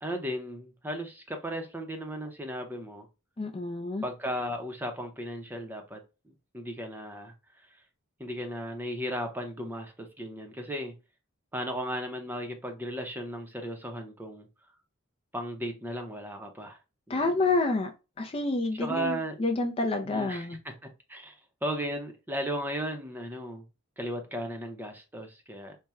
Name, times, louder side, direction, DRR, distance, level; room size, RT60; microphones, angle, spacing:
voice 1, 0.0-3.1 4.0-6.0 6.3-7.3 8.2-11.0 11.5-14.5 15.3-16.8 17.1-17.5 18.7-19.4 20.1-23.6 24.0-25.8, equal, 10° right, 0.7 m, -36 dB
voice 2, 3.4-4.0 17.1-17.9 18.2-19.1 19.4-20.6, left 3 dB, 25° left, 0.4 m, -28 dB
4.3 x 2.2 x 3.5 m
head